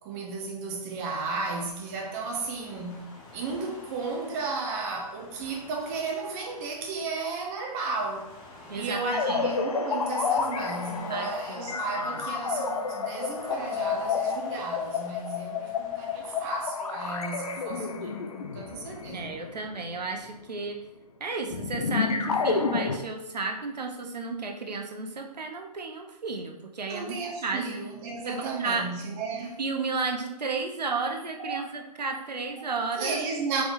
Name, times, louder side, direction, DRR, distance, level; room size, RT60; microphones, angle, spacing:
voice 1, 0.0-3.1 3.3-8.3 8.7-19.4 26.9-29.6 31.0-31.1 31.4-31.7 32.0-32.1 33.0-33.6, right 4 dB, 25° right, -1 dB, 0.8 m, -34 dB
Waves surf, 1.8-16.7, left 2 dB, 25° left, 1.0 m, -51 dB
voice 2, 8.7-9.4 11.1-12.2 19.1-20.8 21.2-27.6 28.3-28.8 29.6-33.2, right 4 dB, 85° right, 3 dB, 0.8 m, -33 dB
sound 1, 9.1-20.5 21.5-23.0, left 5 dB, 60° left, 0.6 m, -30 dB
4.7 x 4.0 x 2.6 m, 0.90 s
hypercardioid pair, 140°, 21 cm